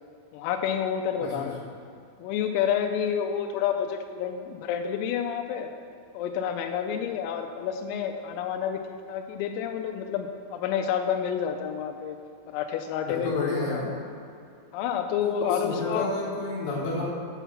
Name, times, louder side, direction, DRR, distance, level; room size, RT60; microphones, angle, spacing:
voice 1, 0.3-1.7 2.2-5.7 6.2-8.8 9.1-12.2 12.5-13.8 14.7-16.1, left 8 dB, 90° left, 4 dB, 3.3 m, -29 dB
voice 2, 13.1-13.9 15.2-17.1, left 3 dB, 70° left, -7 dB, 2.9 m, -31 dB
8.3 x 5.8 x 6.9 m, 2.5 s
omnidirectional pair, 6.0 m